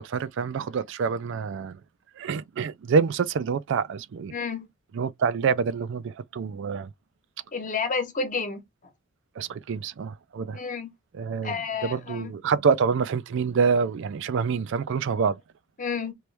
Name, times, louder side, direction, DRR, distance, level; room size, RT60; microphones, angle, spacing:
voice 1, 0.0-1.8 2.2-4.3 4.9-6.9 9.4-10.6 11.1-11.6 11.8-15.4, right 5 dB, 65° right, 0.4 m, -26 dB
voice 2, 4.3-4.7 7.5-8.6 10.5-10.9 11.4-12.3 15.8-16.1, left 5 dB, 40° left, 1.0 m, -30 dB
3.0 x 3.0 x 3.3 m
head